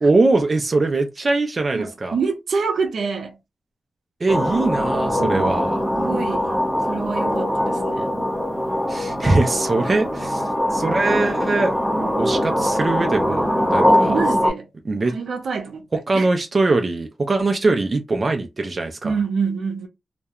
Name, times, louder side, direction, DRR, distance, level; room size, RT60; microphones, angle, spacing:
voice 1, 0.0-2.2 4.2-5.8 8.9-11.8 12.2-14.1 14.8-15.1 16.1-19.2, right 3 dB, 30° right, 0.4 m, -21 dB
voice 2, 1.7-3.4 5.2-5.5 6.0-6.5 6.9-8.1 13.9-14.7 15.1-15.8 16.1-16.3 19.0-19.9, right 5 dB, 75° right, 0.6 m, -26 dB
sound 1, 4.3-14.5, equal, 5° right, 1.0 m, -22 dB
2.3 x 2.1 x 2.8 m
wide cardioid pair, 160°, 0 cm